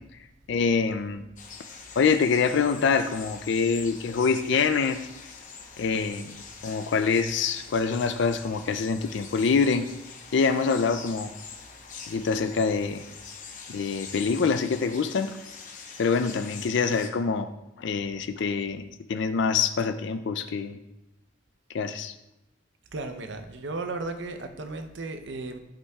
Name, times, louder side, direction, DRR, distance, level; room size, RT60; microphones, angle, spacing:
voice 1, 0.5-1.2 2.0-5.0 5.8-6.3 6.6-9.8 10.3-11.3 12.1-13.0 13.7-15.3 16.0-17.5 17.8-20.8 21.7-22.1, left 5 dB, 65° left, 9 dB, 0.4 m, -25 dB
sound 1, 1.4-17.1, left 5 dB, 40° left, 0.9 m, -44 dB
voice 2, 22.9-25.6, right 3 dB, 65° right, 7 dB, 0.7 m, -35 dB
11.5 x 5.4 x 2.3 m, 0.90 s
head